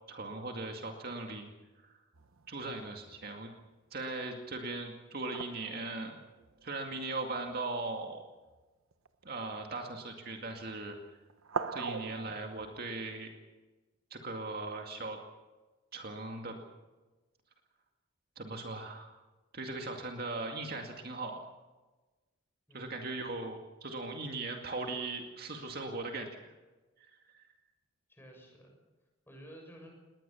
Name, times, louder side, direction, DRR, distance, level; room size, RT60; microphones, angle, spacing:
voice 1, 0.1-1.5 2.5-3.5 3.9-6.1 6.6-8.2 9.2-11.0 11.7-13.3 14.1-15.2 15.9-16.6 18.4-19.1 19.5-21.4 22.7-26.4 27.3-27.4, right 2 dB, 50° right, 3 dB, 2.2 m, -39 dB
sound 1, 2.1-3.3 5.3-7.6 8.5-8.6 8.9-9.6 10.5-10.9 11.3-13.1, right 5 dB, 90° right, 1.2 m, -42 dB
voice 2, 22.7-23.3 28.1-28.7 29.3-29.9, right 1 dB, 10° left, 1 dB, 6.8 m, -52 dB
20.5 x 19.5 x 7.1 m, 1.2 s
head